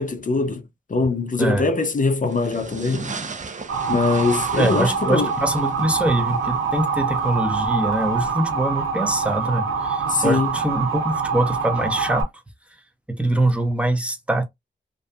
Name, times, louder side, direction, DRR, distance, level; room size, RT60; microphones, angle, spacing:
voice 1, 0.0-3.2 3.9-5.3 10.1-10.6, left 3 dB, 40° left, 0.5 m, -22 dB
sound 1, 2.3-8.3, right 4 dB, 40° right, 0.5 m, -37 dB
Motor vehicle (road) / Siren, 3.7-12.2, right 5 dB, 90° right, 0.7 m, -25 dB
voice 2, 4.6-12.3 13.1-14.4, right 1 dB, 5° right, 0.8 m, -23 dB
2.6 x 2.3 x 2.2 m
cardioid pair, 55°, 20 cm